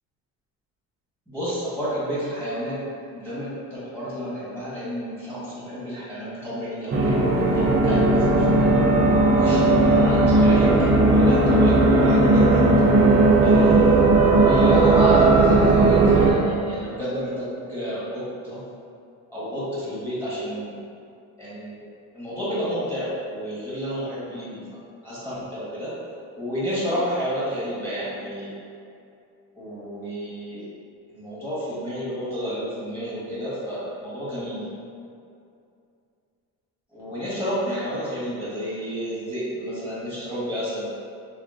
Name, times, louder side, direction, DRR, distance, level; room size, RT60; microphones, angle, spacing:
voice 1, 1.3-2.9 3.2-8.7 9.4-12.7 13.4-18.6 19.3-20.8 21.4-21.8 22.1-24.6 25.0-25.9 26.3-28.5 29.5-30.6 31.1-34.6 36.9-40.9, equal, 5° left, -10 dB, 1.3 m, -30 dB
sound 1, 6.9-16.3, right 2 dB, 35° right, 0.5 m, -17 dB
3.5 x 2.1 x 2.5 m, 2.5 s
cardioid pair, 90°, 37 cm